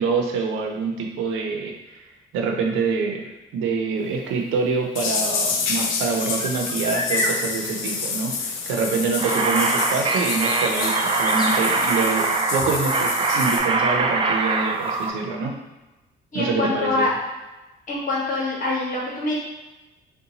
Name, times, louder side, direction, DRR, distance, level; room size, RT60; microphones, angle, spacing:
voice 1, 0.0-2.0 2.3-15.6 16.3-17.1, right 4 dB, 90° right, 1 dB, 0.5 m, -26 dB
sound 1, 4.2-4.3 5.0-8.8 9.1-12.2, equal, 20° left, 0.6 m, -33 dB
sound 2, 5.0-13.6, left 5 dB, 85° left, 0.5 m, -28 dB
sound 3, 9.2-15.1, right 3 dB, 30° right, 0.3 m, -23 dB
voice 2, 16.3-17.1 17.9-19.4, left 2 dB, 40° left, -5 dB, 1.4 m, -24 dB
3.9 x 2.2 x 2.8 m, 1.1 s
cardioid pair, 90°, 20 cm